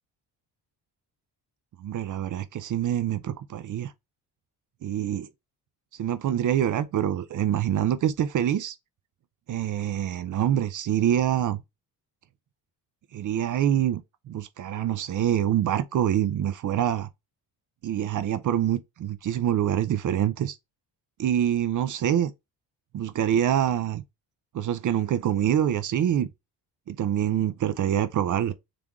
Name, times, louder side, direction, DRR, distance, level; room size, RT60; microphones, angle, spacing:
voice 1, 1.8-3.9 4.8-5.3 6.0-8.7 9.5-11.6 13.1-14.0 14.3-17.1 17.8-20.6 21.2-22.3 22.9-24.0 24.5-26.3 26.9-28.5, right 10 dB, 50° right, 0.6 m, -25 dB
3.6 x 3.4 x 3.5 m
cardioid pair, 110°, 40 cm